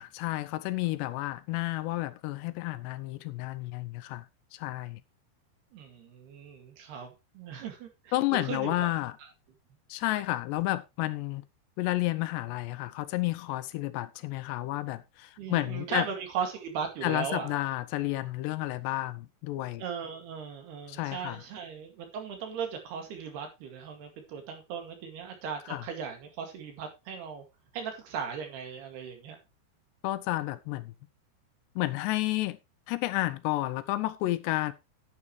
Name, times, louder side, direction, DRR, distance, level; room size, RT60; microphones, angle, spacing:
voice 1, 0.0-4.3 4.5-5.0 8.1-9.2 9.9-11.4 11.8-16.1 17.0-19.8 20.9-21.4 25.7-25.8 30.0-30.9 31.8-32.6 32.9-34.7, left 17 dB, 80° left, 2.7 m, -31 dB
voice 2, 5.7-8.9 15.4-17.6 19.8-27.5 27.7-29.4, right 7 dB, 65° right, 4.0 m, -37 dB
11.0 x 9.6 x 3.1 m
omnidirectional pair, 5.1 m